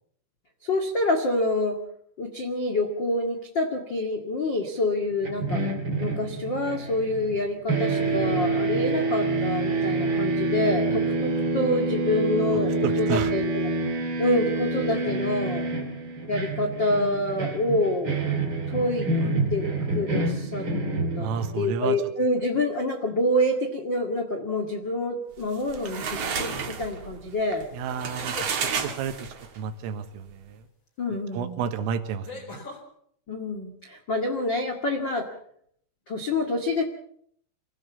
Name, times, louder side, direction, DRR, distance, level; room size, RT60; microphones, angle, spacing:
voice 1, 0.6-1.8 2.2-5.6 6.0-12.7 13.0-13.7 14.2-15.7 16.3-18.2 18.7-19.1 19.5-20.6 21.2-21.3 21.5-27.7 31.0-31.6 33.3-35.3 36.1-36.8, left 1 dB, 80° left, 4 dB, 1.0 m, -27 dB
sound 1, 5.2-7.4 7.7-21.7, right 2 dB, 30° right, 2.5 m, -27 dB
voice 2, 12.8-13.3 19.2-19.3 21.2-22.0 27.7-28.4 28.8-29.2 29.6-30.7 31.3-32.7, right 7 dB, 85° right, 9 dB, 4.0 m, -30 dB
sound 2, 25.4-25.8 27.9-28.6 30.9-31.0 32.2-32.8, left 4 dB, 25° left, 4.7 m, -40 dB
sound 3, 25.4-29.6, right 6 dB, 50° right, 2.1 m, -31 dB
26.0 x 16.5 x 7.2 m, 0.67 s
omnidirectional pair, 5.8 m